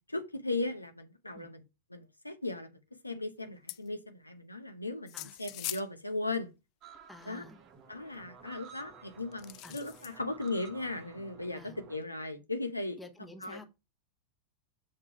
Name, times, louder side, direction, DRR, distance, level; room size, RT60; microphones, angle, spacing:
voice 1, 0.0-1.6 1.9-2.7 3.0-6.5 7.3-7.5 7.9-13.0 13.4-13.6, left 2 dB, 85° left, 0.8 m, -37 dB
sound 1, 3.7-3.9 5.1-5.9 6.3-6.4 7.2-7.3 9.3-10.2 10.5-10.6, left 18 dB, 40° left, 0.3 m, -41 dB
sound 2, 6.8-12.0, right 6 dB, 35° right, 0.9 m, -54 dB
voice 2, 7.1-7.6 9.6-9.8 11.5-11.8 13.0-13.6, left 2 dB, 5° left, 1.1 m, -50 dB
6.6 x 3.7 x 4.5 m
figure-of-eight pair, 90°, 0 cm